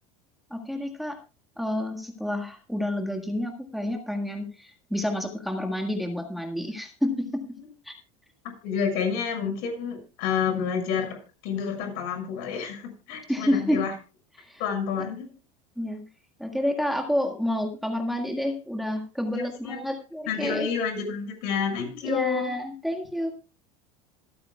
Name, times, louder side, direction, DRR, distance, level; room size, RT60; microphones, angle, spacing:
voice 1, 0.5-1.2 1.6-7.4 7.8-7.9 13.3-13.8 14.4-14.6 15.8-16.0 16.4-20.7 22.0-23.4, left 1 dB, ahead, 3 dB, 1.7 m, -29 dB
voice 2, 8.6-13.9 14.6-15.3 19.3-19.8 20.2-22.5, left 6 dB, 65° left, 3 dB, 6.5 m, -29 dB
26.5 x 8.8 x 2.3 m, 0.33 s
supercardioid pair, 120°, 17 cm